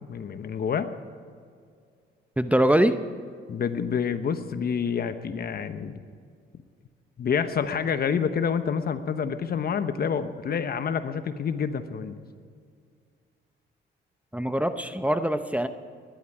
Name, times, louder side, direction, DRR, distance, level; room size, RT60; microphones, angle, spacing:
voice 1, 0.1-0.9 3.5-6.0 7.2-12.2, left 7 dB, 50° left, 10 dB, 1.1 m, -28 dB
voice 2, 2.4-2.9 14.3-15.7, right 1 dB, 5° right, 9 dB, 0.7 m, -23 dB
19.5 x 11.5 x 4.9 m, 2.2 s
cardioid pair, 90°, 20 cm